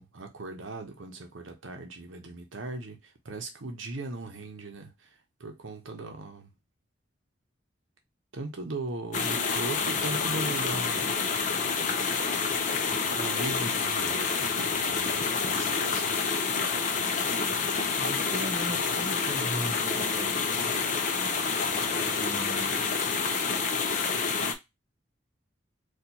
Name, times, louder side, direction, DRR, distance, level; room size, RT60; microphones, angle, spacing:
voice 1, 0.0-5.1 5.4-6.5 8.3-11.1 13.1-16.2, right 2 dB, 90° right, 0.8 m, -38 dB
sound 1, 9.1-24.5, left 5 dB, 40° left, 0.6 m, -28 dB
voice 2, 18.0-20.7 21.9-22.8, equal, 40° right, 1.0 m, -38 dB
4.3 x 2.4 x 2.7 m
head